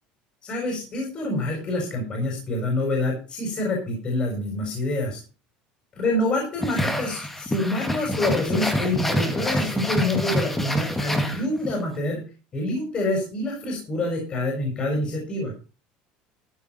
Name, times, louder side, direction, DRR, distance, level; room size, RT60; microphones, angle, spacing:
voice 1, 0.4-5.2 5.9-12.2 12.5-15.5, left 2 dB, 30° left, 1 dB, 4.8 m, -27 dB
sound 1, 6.6-11.8, equal, 5° left, 1.8 m, -26 dB
14.0 x 7.1 x 5.6 m, 0.34 s
cardioid pair, 145°, 3 cm